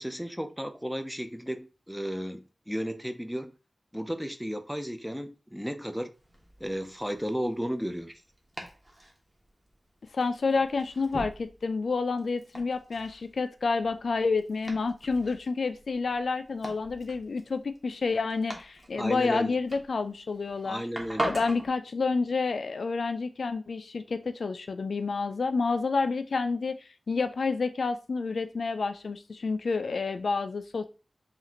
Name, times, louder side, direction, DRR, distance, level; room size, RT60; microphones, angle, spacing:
voice 1, 0.0-3.5 3.9-6.1 6.6-8.2 19.0-19.5 20.6-21.3, equal, ahead, 0.4 m, -33 dB
Domestic sounds home sounds, 6.1-21.7, right 1 dB, 20° right, 1.1 m, -42 dB
voice 2, 10.1-20.8 21.2-30.9, left 4 dB, 85° left, 0.3 m, -29 dB
5.7 x 2.5 x 2.8 m
wide cardioid pair, 90°, 0 cm